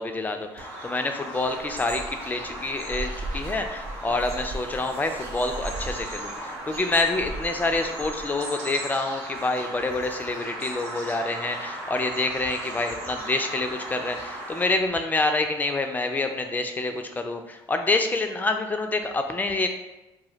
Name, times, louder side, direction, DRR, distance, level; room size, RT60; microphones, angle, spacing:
voice 1, 0.0-19.7, left 2 dB, 15° left, 5 dB, 0.4 m, -27 dB
Bird vocalization bird call bird song, 0.6-14.6, right 1 dB, 80° right, 0.8 m, -37 dB
sound 1, 1.2-8.4, right 2 dB, 60° right, 0.5 m, -38 dB
2.2 x 2.1 x 3.8 m, 1.0 s
supercardioid pair, 65°, 12 cm